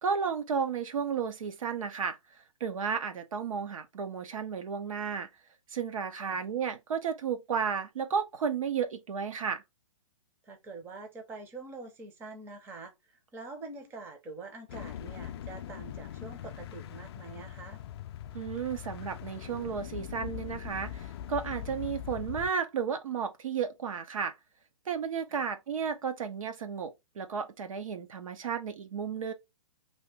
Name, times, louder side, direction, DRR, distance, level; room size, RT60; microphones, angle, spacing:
voice 1, 0.0-2.2 2.6-5.3 5.7-9.6 18.3-24.3 24.9-29.3, right 6 dB, 75° right, 0.7 m, -33 dB
voice 2, 10.4-17.8 25.3-25.5, right 3 dB, 15° right, 0.6 m, -45 dB
sound 1, 14.7-22.5, left 10 dB, 50° left, 0.4 m, -41 dB
2.8 x 2.8 x 3.2 m
hypercardioid pair, 150°, 17 cm